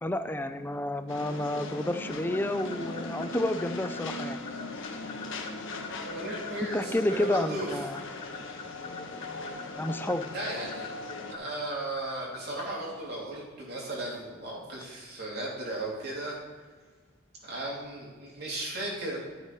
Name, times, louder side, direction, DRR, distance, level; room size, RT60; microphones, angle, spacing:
voice 1, 0.0-4.4 6.7-8.0 9.8-10.2, left 1 dB, 10° left, 10 dB, 0.4 m, -30 dB
sound 1, 1.1-11.4, left 2 dB, 65° left, 1.2 m, -39 dB
sound 2, 2.1-12.6, left 5 dB, 30° left, 2.7 m, -41 dB
voice 2, 6.0-7.7 10.3-11.0 11.3-16.4 17.4-19.2, right 1 dB, 50° right, -3 dB, 2.9 m, -36 dB
12.5 x 6.7 x 4.7 m, 1.5 s
head